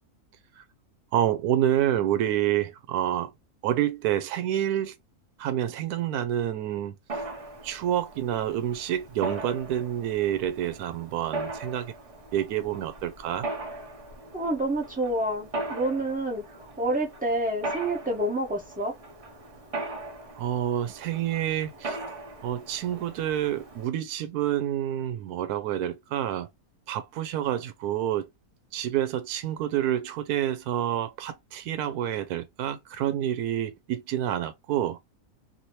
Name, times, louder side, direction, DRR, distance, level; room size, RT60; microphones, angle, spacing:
voice 1, 1.1-3.3 3.6-5.0 5.4-7.0 7.6-11.9 12.3-13.5 20.4-22.0 22.4-26.5 26.9-28.3 28.7-35.0, right 11 dB, 85° right, 1.1 m, -28 dB
Mechanisms, 7.1-23.9, right 2 dB, 40° right, 0.5 m, -39 dB
voice 2, 14.3-18.9, right 1 dB, 5° right, 0.8 m, -28 dB
2.8 x 2.8 x 3.0 m
omnidirectional pair, 1.6 m